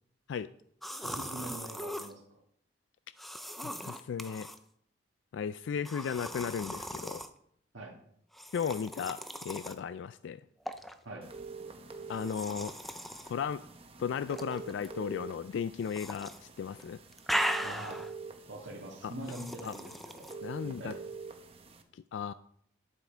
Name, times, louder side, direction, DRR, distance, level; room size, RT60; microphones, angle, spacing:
sound 1, 0.8-2.1 3.2-4.6 5.9-7.3 8.3-9.8 10.7-10.9 12.1-13.3 14.3-14.9 15.8-16.4 16.7-18.1 19.2-20.3, equal, ahead, 0.4 m, -38 dB
voice 1, 1.0-2.2 7.7-7.9 11.1-11.3 17.6-18.0 18.5-20.3 20.6-20.9, right 1 dB, 85° right, -3 dB, 1.8 m, -43 dB
voice 2, 3.6-4.5 5.3-7.2 8.5-10.4 12.1-12.8 13.3-13.6 14.0-17.0 19.0-19.1 19.6-19.7 20.4-20.9 21.9-22.3, left 7 dB, 75° left, 15 dB, 0.3 m, -35 dB
sound 2, 11.2-21.8, right 4 dB, 30° right, 0.9 m, -46 dB
11.5 x 7.1 x 4.4 m, 0.69 s
head